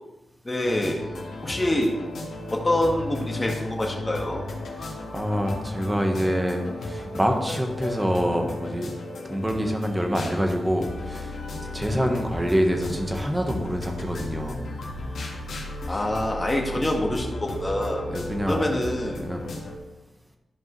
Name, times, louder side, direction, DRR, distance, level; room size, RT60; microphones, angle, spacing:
voice 1, 0.4-1.0 1.4-2.0 2.5-4.4 15.9-18.0 18.5-19.2, left 1 dB, 20° left, 0 dB, 1.8 m, -25 dB
sound 1, 0.6-19.8, left 2 dB, 85° left, 1.8 m, -35 dB
voice 2, 4.8-8.9 9.2-11.4 11.7-14.6 15.9-16.0 18.1-18.7 19.2-19.5, equal, 10° right, 3 dB, 1.3 m, -26 dB
13.5 x 5.3 x 3.3 m, 1.0 s
cardioid pair, 90°, 0 cm